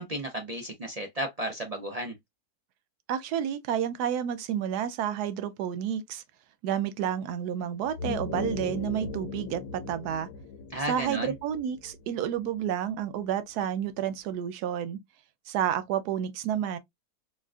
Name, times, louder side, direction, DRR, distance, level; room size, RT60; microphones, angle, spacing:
voice 1, 0.0-2.1 10.7-11.3, right 1 dB, 65° right, 0.3 m, -33 dB
voice 2, 3.1-6.2 6.6-10.3 10.9-15.0 15.5-16.8, right 9 dB, 85° right, 1.2 m, -30 dB
sound 1, 7.8-12.7, left 5 dB, 85° left, 1.2 m, -38 dB
4.5 x 2.3 x 2.3 m
omnidirectional pair, 1.6 m